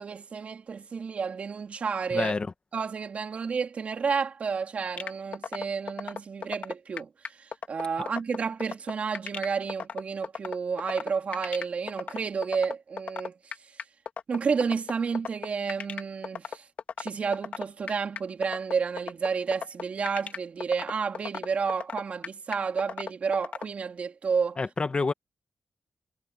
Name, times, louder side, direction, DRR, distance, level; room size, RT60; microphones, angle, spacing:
voice 1, 0.0-2.3 2.7-13.5 14.3-16.7 17.0-24.6, right 5 dB, 65° right, 4.1 m, -31 dB
voice 2, 2.1-2.5 24.6-25.1, left 4 dB, 45° left, 1.8 m, -27 dB
sound 1, 5.0-23.6, left 6 dB, 75° left, 2.6 m, -34 dB
cardioid pair, 55°, 2 cm